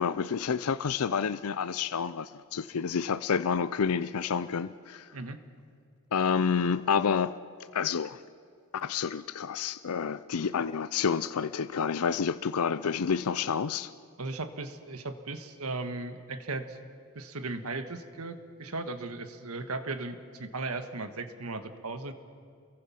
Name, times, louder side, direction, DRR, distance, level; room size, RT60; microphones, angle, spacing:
voice 1, 0.0-5.1 6.1-7.3 7.7-8.2 8.7-13.9, left 6 dB, 80° left, 14 dB, 0.5 m, -29 dB
voice 2, 14.2-16.8 17.1-22.1, right 3 dB, 80° right, 8 dB, 1.5 m, -37 dB
29.5 x 22.5 x 5.8 m, 2.3 s
head